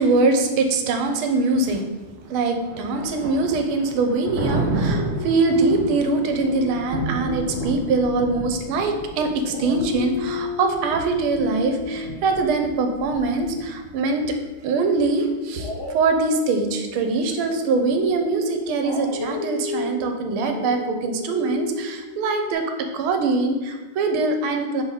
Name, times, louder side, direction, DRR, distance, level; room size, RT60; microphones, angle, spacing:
voice 1, 0.0-1.9 2.2-22.7 22.9-24.8, right 3 dB, 85° right, 5 dB, 1.6 m, -23 dB
Thunder, 2.2-14.0, right 2 dB, 55° right, 1.7 m, -32 dB
Dog, 4.9-9.1 9.4-14.4 15.5-22.5, left 3 dB, 45° left, 1.0 m, -35 dB
4.8 x 4.0 x 5.5 m, 1.2 s
omnidirectional pair, 2.3 m